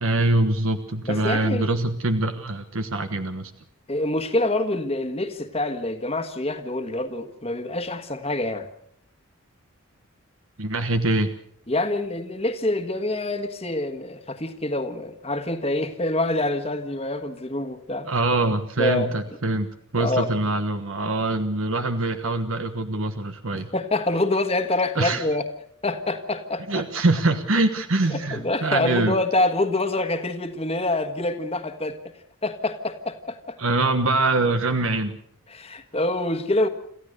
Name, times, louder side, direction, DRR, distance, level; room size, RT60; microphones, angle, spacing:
voice 1, 0.0-3.5 10.6-11.3 18.0-19.7 19.9-23.7 24.9-25.2 26.7-29.2 33.6-35.2, right 2 dB, 75° right, 8 dB, 1.3 m, -24 dB
voice 2, 1.0-1.7 3.9-8.7 11.7-18.1 18.8-19.1 19.9-20.3 23.7-25.5 25.8-26.8 28.1-32.1 32.4-33.6 35.5-36.7, left 2 dB, 30° left, 8 dB, 1.5 m, -26 dB
27.5 x 15.0 x 6.6 m, 0.69 s
head